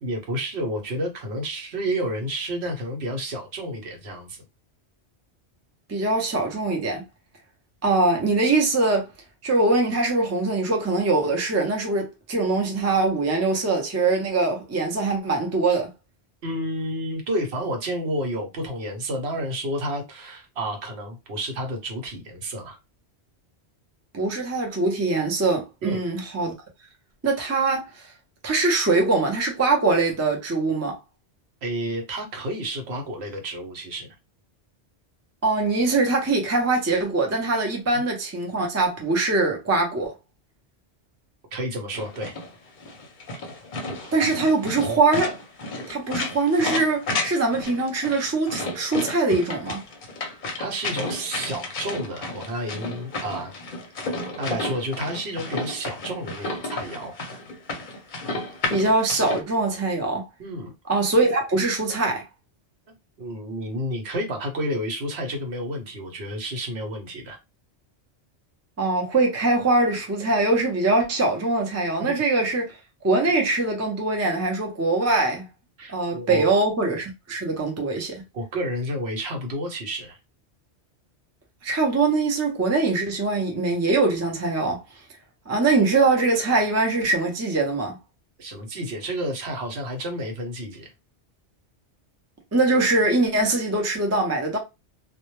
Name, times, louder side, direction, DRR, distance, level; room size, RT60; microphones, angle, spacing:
voice 1, 0.0-4.4 15.7-15.8 16.4-22.8 25.8-26.0 31.6-34.1 41.5-42.4 50.6-53.5 54.4-57.2 60.4-60.7 63.2-67.4 72.0-72.1 75.8-76.5 78.3-80.2 88.4-90.9, equal, 70° right, 0.9 m, -30 dB
voice 2, 5.9-7.0 7.8-9.1 9.4-15.9 24.1-26.5 27.2-27.9 28.4-31.0 35.4-40.1 44.1-45.4 45.9-49.8 58.7-60.2 60.9-62.3 68.8-72.7 73.0-75.4 75.9-78.1 81.6-84.8 85.5-88.0 92.5-94.6, right 3 dB, 20° right, 0.4 m, -22 dB
sound 1, 41.9-59.4, left 2 dB, 50° left, 0.7 m, -32 dB
2.1 x 2.1 x 3.0 m
omnidirectional pair, 1.1 m